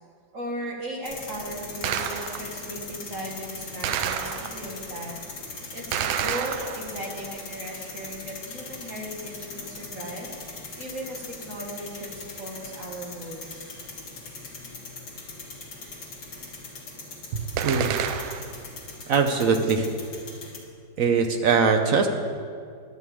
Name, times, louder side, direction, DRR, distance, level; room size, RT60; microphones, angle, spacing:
voice 1, 0.3-5.2 5.7-10.3 10.8-13.5, right 1 dB, 40° right, -1 dB, 1.9 m, -37 dB
sound 1, 1.0-20.6, left 3 dB, 65° left, 2.6 m, -40 dB
Gunshot gunfire, 1.8-2.7 3.8-4.8 5.9-7.2 17.6-18.6, right 9 dB, 85° right, 1.5 m, -29 dB
voice 2, 17.3-17.9 19.1-19.9 21.0-22.1, right 5 dB, 65° right, 5 dB, 0.8 m, -22 dB
11.0 x 6.6 x 8.5 m, 2.2 s
omnidirectional pair, 2.2 m